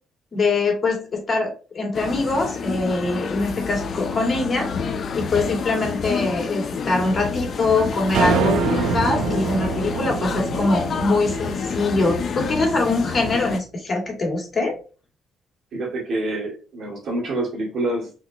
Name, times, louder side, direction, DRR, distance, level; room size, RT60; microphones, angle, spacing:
voice 1, 0.3-4.7 5.2-14.7, left 3 dB, 35° left, 0 dB, 2.2 m, -23 dB
sound 1, 1.9-13.6, left 5 dB, 55° left, 0.6 m, -28 dB
sound 2, 8.1-12.6, right 5 dB, 80° right, 0.5 m, -25 dB
voice 2, 15.7-18.1, right 2 dB, 60° right, -2 dB, 2.2 m, -27 dB
4.0 x 3.9 x 2.9 m, 0.36 s
cardioid pair, 90°, 0 cm